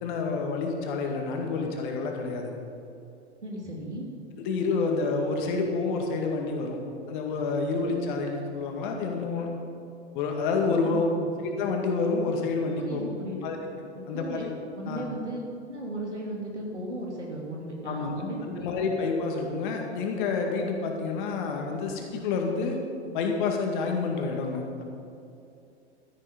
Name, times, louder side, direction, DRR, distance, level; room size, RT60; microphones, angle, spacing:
voice 1, 0.0-2.5 4.4-6.8 7.1-9.5 10.1-11.1 11.4-13.0 13.4-14.5 14.9-15.0 17.8-22.8 23.1-24.8, left 4 dB, 45° left, 2 dB, 2.0 m, -29 dB
voice 2, 3.4-4.1 10.8-11.3 12.8-13.5 13.9-14.5 14.7-15.4 15.7-18.7, right 1 dB, 80° right, -1 dB, 2.8 m, -36 dB
12.5 x 10.0 x 5.3 m, 2.6 s
figure-of-eight pair, 95°, 34 cm